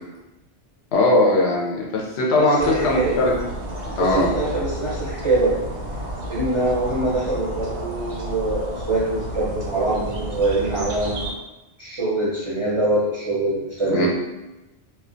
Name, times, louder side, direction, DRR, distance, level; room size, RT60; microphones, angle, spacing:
voice 1, 0.9-3.3 4.0-4.4 13.8-14.1, left 2 dB, 70° left, -2 dB, 0.8 m, -19 dB
voice 2, 2.4-3.1 4.1-5.6 6.3-11.3 11.8-14.1, right 2 dB, 40° right, -9 dB, 0.5 m, -24 dB
sound 1, 2.6-11.3, right 1 dB, 85° right, 0.9 m, -31 dB
2.3 x 2.2 x 2.5 m, 1.0 s
omnidirectional pair, 1.2 m